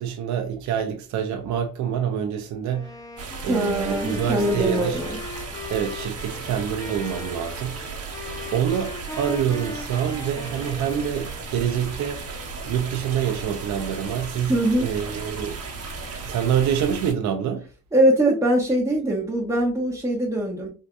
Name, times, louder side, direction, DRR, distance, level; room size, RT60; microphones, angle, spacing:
voice 1, 0.0-2.9 3.4-5.0 5.7-7.8 8.5-12.3 12.6-15.6 16.3-17.6, right 8 dB, 70° right, 0.6 m, -26 dB
Wind instrument woodwind instrument, 2.7-11.5, left 2 dB, 10° left, 0.5 m, -39 dB
sound 1, 3.2-17.1, right 4 dB, 50° right, 1.1 m, -35 dB
voice 2, 3.5-5.2 14.5-14.9 17.9-20.7, right 1 dB, 10° right, 1.0 m, -22 dB
3.7 x 2.6 x 2.2 m
cardioid pair, 90°, 30 cm